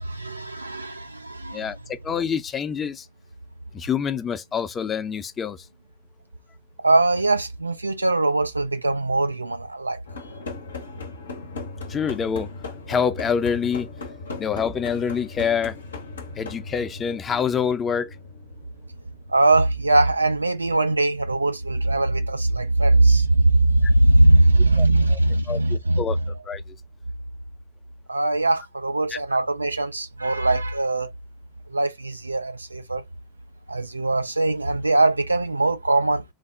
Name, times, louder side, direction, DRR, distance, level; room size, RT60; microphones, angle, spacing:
voice 1, 0.0-1.7 6.8-10.0 19.3-26.0 28.1-31.1 31.7-33.0 33.7-36.2, right 2 dB, 85° right, 0.4 m, -21 dB
voice 2, 1.5-3.1 3.7-5.7 11.9-12.5 12.9-13.9 14.4-15.8 16.4-18.2 24.8-25.2 25.5-26.2 26.5-26.6 29.1-29.2, left 7 dB, 30° left, 0.6 m, -26 dB
sound 1, 10.1-21.9, left 3 dB, 75° left, 0.7 m, -38 dB
3.3 x 2.1 x 3.7 m
figure-of-eight pair, 80°, 0 cm